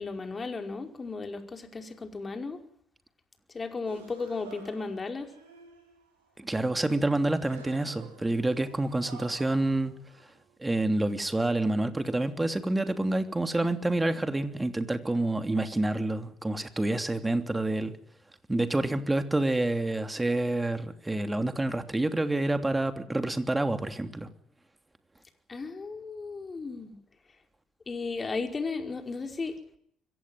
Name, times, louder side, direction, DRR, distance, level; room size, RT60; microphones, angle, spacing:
voice 1, 0.0-2.6 3.5-5.3 25.5-27.0 27.9-29.6, left 4 dB, 30° left, 5 dB, 5.0 m, -35 dB
sound 1, 3.8-6.3 7.3-10.6 11.1-11.4 12.2-12.6, right 5 dB, 85° right, 5.3 m, -52 dB
voice 2, 6.4-9.9 10.6-17.9 18.5-24.3, right 2 dB, 15° right, 8 dB, 3.0 m, -28 dB
24.5 x 17.0 x 9.7 m, 0.70 s
hypercardioid pair, 50°, 0 cm